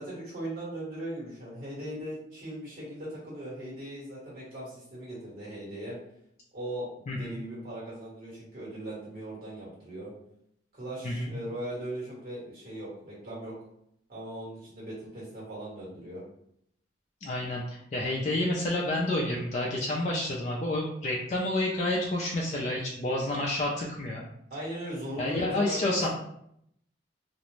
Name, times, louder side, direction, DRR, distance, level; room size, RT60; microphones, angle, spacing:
voice 1, 0.0-6.0 6.5-10.1 10.7-13.5 14.1-16.2 24.5-26.1, right 1 dB, 50° right, -7 dB, 1.3 m, -39 dB
voice 2, 17.2-24.2 25.2-26.1, left 1 dB, 35° left, -3 dB, 0.3 m, -29 dB
2.4 x 2.0 x 3.0 m, 0.74 s
head